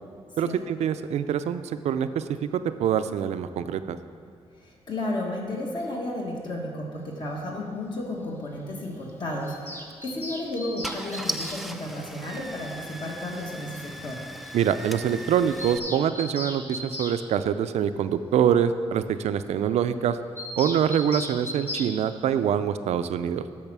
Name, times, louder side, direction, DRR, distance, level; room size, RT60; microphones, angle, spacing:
voice 1, 0.4-4.0 14.5-20.2 20.6-23.5, right 8 dB, 90° right, 11 dB, 0.4 m, -25 dB
voice 2, 4.6-14.2, left 1 dB, 45° left, -1 dB, 1.5 m, -33 dB
Bird vocalization bird call bird song, 9.4-11.6 13.0-13.1 13.4-13.5 13.7-13.8 14.1-14.2 14.4-14.5 14.8-14.9 15.2-17.2 20.4-21.9, left 1 dB, 20° left, 0.9 m, -36 dB
Car / Engine starting, 9.7-9.9 10.5-10.6 10.8-15.8, right 1 dB, ahead, 0.3 m, -38 dB
8.8 x 6.4 x 6.1 m, 2.2 s
wide cardioid pair, 160°, 11 cm